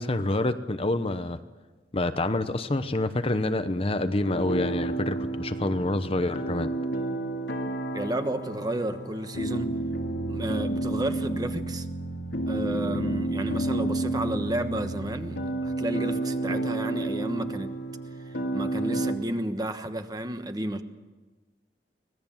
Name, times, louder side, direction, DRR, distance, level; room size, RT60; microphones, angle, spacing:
voice 1, 0.0-1.4 1.9-6.7, left 2 dB, 35° left, 10 dB, 0.8 m, -27 dB
sound 1, 4.3-19.1, right 2 dB, 85° left, 2.3 m, -30 dB
voice 2, 7.9-9.7 10.3-11.9 12.5-17.7 18.3-20.8, right 1 dB, 20° right, 8 dB, 1.2 m, -32 dB
25.0 x 18.5 x 7.3 m, 1.3 s
head